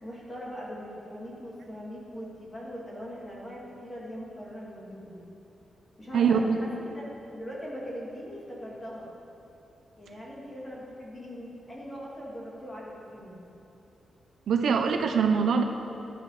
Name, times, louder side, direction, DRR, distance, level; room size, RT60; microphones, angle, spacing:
voice 1, 0.0-5.2 6.0-9.1 10.0-13.4, equal, 15° left, -5 dB, 2.9 m, -41 dB
voice 2, 6.1-6.6 14.5-15.6, right 6 dB, 65° right, 5 dB, 0.9 m, -23 dB
18.5 x 11.0 x 5.1 m, 2.9 s
wide cardioid pair, 175°, 0 cm